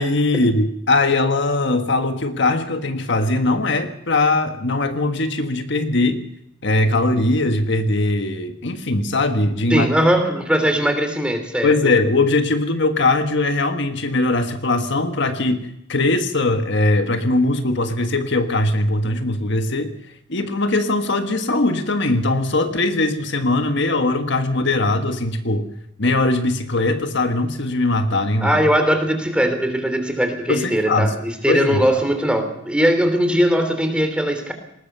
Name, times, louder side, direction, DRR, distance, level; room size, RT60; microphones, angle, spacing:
voice 1, 0.0-6.2 6.6-10.0 11.6-19.9 20.3-25.6 26.0-28.6 30.5-31.1 31.5-31.8, left 2 dB, 60° left, 7 dB, 1.6 m, -20 dB
voice 2, 9.7-11.9 28.4-34.5, equal, 5° right, 7 dB, 3.3 m, -20 dB
20.0 x 19.5 x 6.8 m, 0.79 s
head